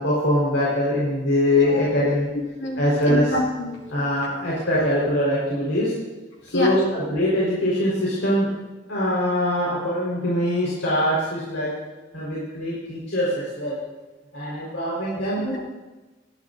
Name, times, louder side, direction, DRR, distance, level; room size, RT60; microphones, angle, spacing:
voice 1, 0.0-2.3 2.8-3.3 3.9-5.9 6.4-8.5 8.9-11.7 12.1-13.8 14.3-15.4, left 1 dB, 85° left, -7 dB, 4.6 m, -23 dB
voice 2, 1.5-1.8 2.6-2.8 3.1-4.0 6.5-6.7 15.4-15.6, left 1 dB, 65° left, -3 dB, 2.8 m, -27 dB
20.0 x 14.0 x 2.7 m, 1.2 s
head